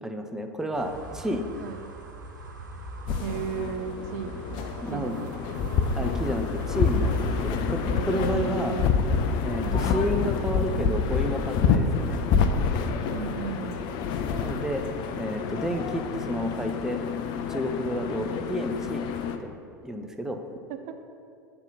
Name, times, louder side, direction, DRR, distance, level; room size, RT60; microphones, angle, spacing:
voice 1, 0.0-1.5 4.8-5.2 5.9-7.8 8.1-8.8 9.4-12.2 14.4-14.8 15.2-17.0 17.5-19.0 19.4-19.5 19.8-20.4, equal, 5° right, 5 dB, 0.6 m, -31 dB
sound 1, 0.7-7.8, right 2 dB, 90° right, 1.2 m, -42 dB
voice 2, 1.6-1.9 3.2-4.3 4.9-5.7 7.8-9.2 9.6-10.0 13.1-13.9 20.7-20.9, right 7 dB, 55° right, 7 dB, 0.5 m, -35 dB
sound 2, 3.1-19.4, left 5 dB, 50° left, 0.6 m, -27 dB
sound 3, 8.1-13.1, right 3 dB, 25° left, 1.5 m, -45 dB
8.9 x 3.9 x 5.7 m, 2.4 s
hypercardioid pair, 85°, 10 cm